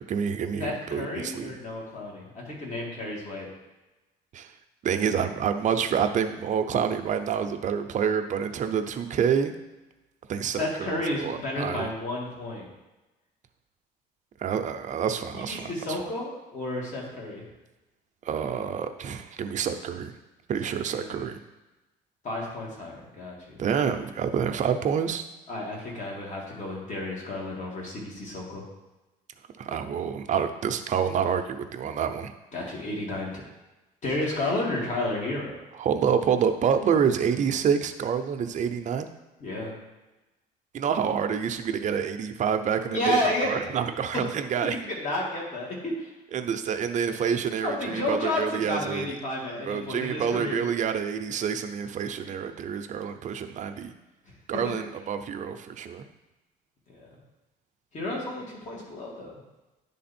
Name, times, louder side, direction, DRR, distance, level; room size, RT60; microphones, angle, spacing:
voice 1, 0.0-1.5 4.3-4.5 4.8-9.5 10.3-11.9 14.4-15.7 18.2-20.1 20.5-21.4 23.6-25.3 29.6-32.3 35.8-39.1 40.7-44.8 46.3-49.2 49.6-53.9 54.5-56.0, right 7 dB, 45° right, 7 dB, 0.6 m, -27 dB
voice 2, 0.6-3.5 10.6-12.7 15.3-17.4 20.9-21.3 22.2-23.6 25.5-28.6 32.5-33.4 34.0-35.6 39.4-39.7 42.9-43.6 44.6-46.1 47.6-50.6 56.9-57.1 57.9-59.3, left 1 dB, 45° left, -3 dB, 2.3 m, -31 dB
10.0 x 3.5 x 4.3 m, 1.1 s
cardioid pair, 110°, 17 cm